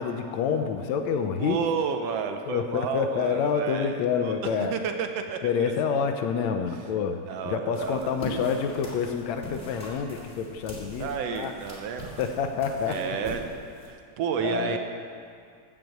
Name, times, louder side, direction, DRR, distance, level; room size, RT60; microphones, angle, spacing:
voice 1, 0.0-1.6 2.5-4.7 5.4-11.5 12.2-13.2 14.4-14.8, left 6 dB, 75° left, 6 dB, 1.9 m, -28 dB
voice 2, 1.4-4.0 4.2-5.7 7.3-8.2 11.0-12.2 12.9-13.5 13.9-14.8, right 7 dB, 75° right, 5 dB, 1.6 m, -31 dB
walk road, 7.7-13.9, left 1 dB, 20° left, 2.5 m, -42 dB
15.0 x 5.7 x 7.7 m, 2.3 s
omnidirectional pair, 3.4 m